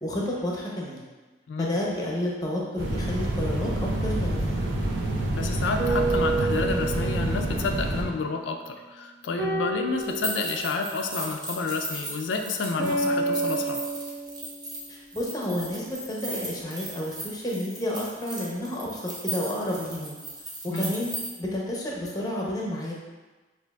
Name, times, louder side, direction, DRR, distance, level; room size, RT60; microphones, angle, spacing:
voice 1, 0.0-1.0 1.6-4.6 14.9-20.2 20.6-22.9, left 1 dB, 20° left, -3 dB, 0.6 m, -31 dB
sound 1, 2.8-8.0, right 1 dB, 85° right, 0.6 m, -28 dB
voice 2, 5.3-13.8 20.7-20.9, left 4 dB, 85° left, 4 dB, 0.3 m, -30 dB
sound 2, 5.8-8.1 9.4-10.7 12.8-15.0, right 3 dB, 70° right, 1.0 m, -29 dB
sound 3, 10.0-21.3, right 1 dB, 20° right, 0.6 m, -37 dB
6.2 x 2.5 x 2.3 m, 1.3 s
head